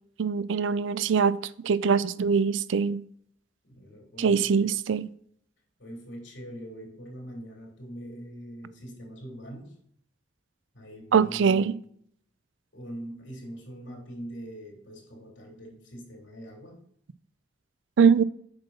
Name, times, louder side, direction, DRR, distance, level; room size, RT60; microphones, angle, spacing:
voice 1, 0.2-3.0 4.2-5.1 11.1-11.7 18.0-18.2, right 6 dB, 85° right, 0.4 m, -23 dB
voice 2, 3.6-4.7 5.8-9.7 10.7-11.7 12.7-16.8, equal, 75° left, 3.3 m, -42 dB
7.9 x 5.3 x 4.1 m
head